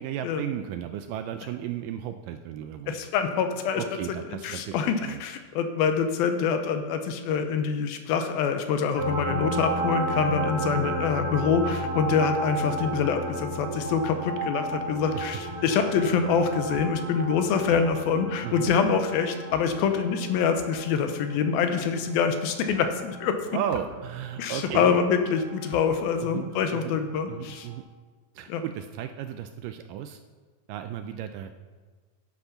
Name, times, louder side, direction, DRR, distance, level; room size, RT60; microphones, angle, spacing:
voice 1, 0.0-3.0 3.8-5.2 15.1-15.3 18.4-18.7 23.5-25.0 26.2-27.0 27.3-27.8 28.4-30.2 30.7-31.6, right 10 dB, 80° right, 8 dB, 1.9 m, -34 dB
voice 2, 2.9-3.8 4.3-23.4 24.4-27.7 28.5-28.6, left 6 dB, 85° left, 7 dB, 2.7 m, -25 dB
sound 1, 8.9-26.2 27.7-27.8, right 2 dB, 35° right, 1.6 m, -33 dB
sound 2, 16.7-17.1 17.7-17.9 18.6-18.8 19.5-19.7 20.5-20.7 21.6-21.7 22.6-22.8 23.7-24.1 24.7-24.9 25.7-25.9, right 5 dB, 65° right, 1.6 m, -42 dB
10.5 x 8.3 x 5.7 m, 1.4 s
omnidirectional pair, 4.2 m